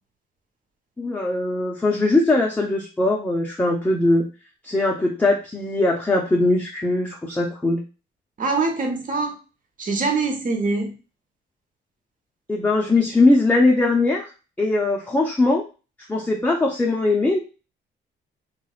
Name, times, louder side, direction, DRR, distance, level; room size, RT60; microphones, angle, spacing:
voice 1, 1.0-4.3 4.6-7.8 12.5-14.3 14.6-15.6 16.1-17.4, left 2 dB, 10° left, 0 dB, 0.5 m, -20 dB
voice 2, 8.4-9.3 9.8-10.9, right 3 dB, 40° right, 3 dB, 0.9 m, -23 dB
2.9 x 2.9 x 2.4 m, 0.33 s
cardioid pair, 90°, 20 cm